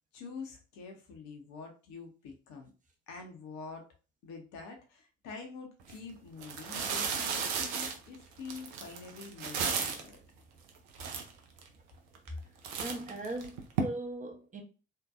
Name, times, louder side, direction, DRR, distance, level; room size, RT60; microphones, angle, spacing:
voice 1, 0.1-2.7 3.1-3.9 4.2-10.2, left 4 dB, 60° left, 0.6 m, -46 dB
sound 1, 5.8-5.9 6.4-10.1 10.7-10.8 11.0-11.7 12.2-12.4 12.6-13.8, right 6 dB, 75° right, 0.5 m, -34 dB
voice 2, 12.8-14.6, right 2 dB, 25° right, 0.7 m, -39 dB
2.6 x 2.2 x 2.3 m
figure-of-eight pair, 40°, 32 cm